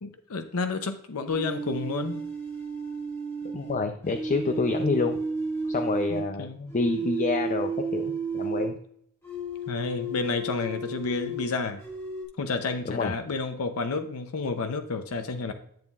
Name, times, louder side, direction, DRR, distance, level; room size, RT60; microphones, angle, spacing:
voice 1, 0.0-2.2 6.1-6.7 9.7-11.8 12.4-15.5, left 4 dB, 75° left, 7 dB, 0.6 m, -30 dB
sound 1, 1.3-6.3 6.7-8.7 9.2-11.5 11.8-12.2, right 3 dB, 10° left, 2.5 m, -32 dB
voice 2, 3.4-5.2 5.6-8.8 12.8-13.1, left 4 dB, 35° left, 7 dB, 0.4 m, -28 dB
10.5 x 7.2 x 2.4 m, 0.67 s
head